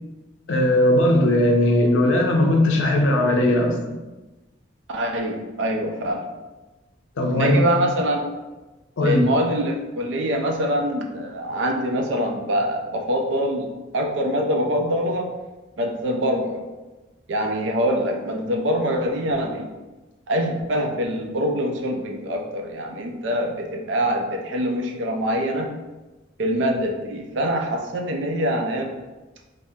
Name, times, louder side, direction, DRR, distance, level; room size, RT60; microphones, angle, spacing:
voice 1, 0.5-4.0 7.2-7.6 9.0-9.2, left 1 dB, 80° left, 2 dB, 0.5 m, -18 dB
voice 2, 4.9-6.3 7.3-8.3 9.0-13.7 13.9-15.3 15.8-16.6 17.3-19.7 20.3-25.7 26.4-28.9, equal, 75° right, 3 dB, 0.4 m, -24 dB
3.4 x 2.0 x 2.6 m, 1.1 s
head